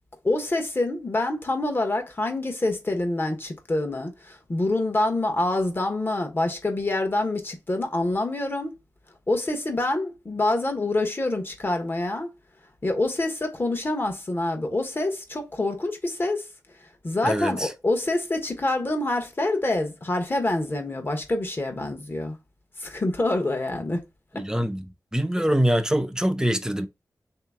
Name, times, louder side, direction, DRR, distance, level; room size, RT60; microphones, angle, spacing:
voice 1, 0.2-8.7 9.3-12.3 12.8-16.5 17.0-22.4 22.8-24.0 24.3-24.5, left 2 dB, 35° left, 1.1 m, -26 dB
voice 2, 17.2-17.7 24.3-24.9 25.1-26.9, right 1 dB, 10° right, 0.5 m, -24 dB
3.4 x 2.9 x 3.5 m
wide cardioid pair, 75°, 6 cm